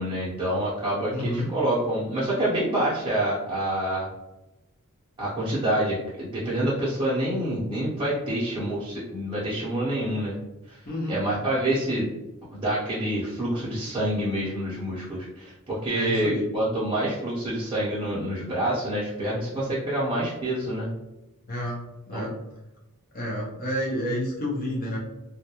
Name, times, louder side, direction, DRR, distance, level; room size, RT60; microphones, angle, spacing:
voice 1, 0.0-4.1 5.2-10.3 10.7-10.8 11.1-12.1 12.5-20.9 22.1-22.3, right 1 dB, 20° right, -9 dB, 0.6 m, -27 dB
voice 2, 1.1-1.5 10.9-11.2 15.9-16.5 21.5-22.4 23.1-25.0, left 1 dB, 40° left, -3 dB, 0.5 m, -30 dB
2.2 x 2.1 x 2.8 m, 0.97 s
head